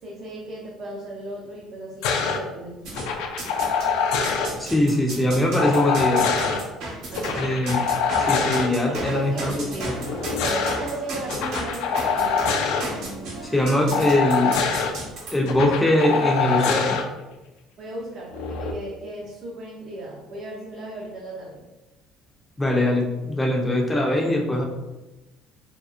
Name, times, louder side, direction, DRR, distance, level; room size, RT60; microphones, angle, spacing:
voice 1, 0.0-2.8 7.1-7.5 8.9-9.9 10.4-12.7 17.8-21.6, right 2 dB, 40° right, -4 dB, 0.5 m, -35 dB
sound 1, 2.0-2.4 2.9-4.5 5.6-6.6 7.1-8.7 10.0-10.8 11.3-12.8 13.9-14.9 15.5-17.0 18.3-18.7, left 5 dB, 85° left, 0.4 m, -24 dB
sound 2, 2.8-3.9 4.2-15.3, right 2 dB, 70° right, 1.0 m, -34 dB
voice 2, 4.6-6.3 7.4-7.8 8.2-9.9 13.5-14.6 15.3-17.0 22.6-24.6, left 1 dB, 10° left, 0 dB, 0.5 m, -22 dB
2.9 x 2.8 x 2.4 m, 1.0 s
cardioid pair, 155°, 0 cm